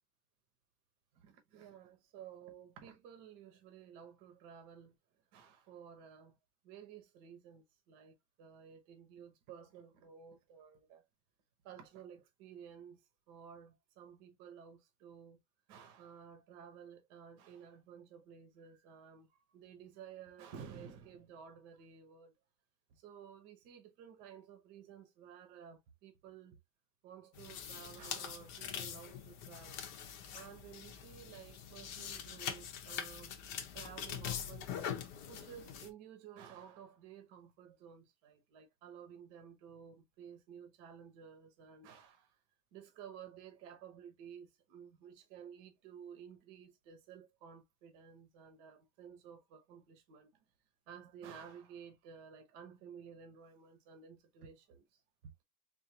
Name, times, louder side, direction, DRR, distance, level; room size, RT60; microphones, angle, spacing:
voice 1, 1.1-5.0 5.3-6.4 6.6-11.0 11.6-15.4 15.7-19.3 19.5-22.3 22.9-26.6 27.0-29.8 30.3-33.3 33.7-34.8 35.3-42.3 42.7-50.3 50.9-54.8 55.2-55.3, right 8 dB, 60° right, 1.4 m, -54 dB
sound 1, 27.3-35.9, left 8 dB, 65° left, 1.2 m, -43 dB
4.8 x 2.5 x 2.7 m
omnidirectional pair, 2.2 m